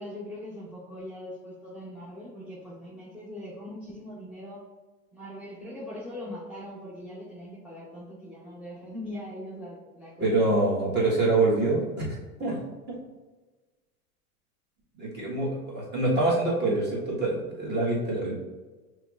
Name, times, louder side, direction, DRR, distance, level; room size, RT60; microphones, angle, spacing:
voice 1, 0.0-4.6 5.1-10.5, left 1 dB, 5° right, -8 dB, 0.6 m, -41 dB
voice 2, 10.2-12.6 12.9-13.0 15.0-18.3, right 2 dB, 25° right, -4 dB, 1.4 m, -25 dB
5.6 x 3.2 x 2.4 m, 1.3 s
hypercardioid pair, 115°, 45 cm